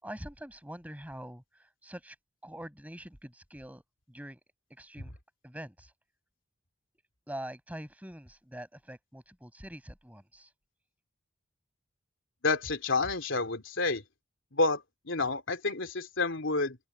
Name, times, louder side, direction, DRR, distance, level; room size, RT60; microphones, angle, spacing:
voice 1, 0.0-2.1 2.4-3.8 4.1-4.4 4.8-5.1 5.4-5.9 7.3-10.5, right 1 dB, 5° right, 6.4 m, -44 dB
voice 2, 12.4-14.0 14.5-16.8, left 3 dB, 65° left, 3.4 m, -29 dB
open air
head